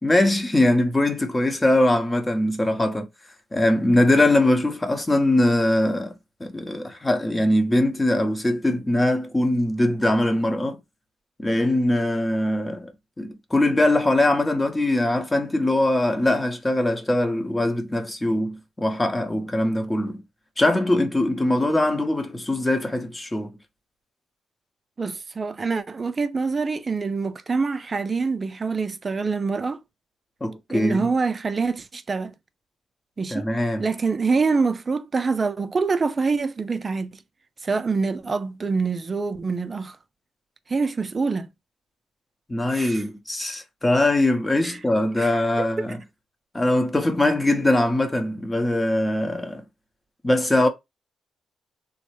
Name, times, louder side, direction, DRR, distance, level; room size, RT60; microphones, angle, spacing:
voice 1, 0.0-3.1 3.5-6.1 6.4-10.8 11.4-12.9 13.2-20.2 20.6-23.5 30.4-31.1 33.3-33.8 42.5-46.0 46.5-49.6 50.2-50.7, left 1 dB, 20° left, 0.8 m, -22 dB
voice 2, 25.0-29.8 30.7-32.3 33.2-33.5 33.8-37.1 37.6-40.0 40.7-41.5 42.7-43.0 44.6-44.8 45.2-45.3 45.6-45.9, right 4 dB, 35° right, 0.4 m, -25 dB
3.1 x 2.0 x 3.0 m
cardioid pair, 75°, 0 cm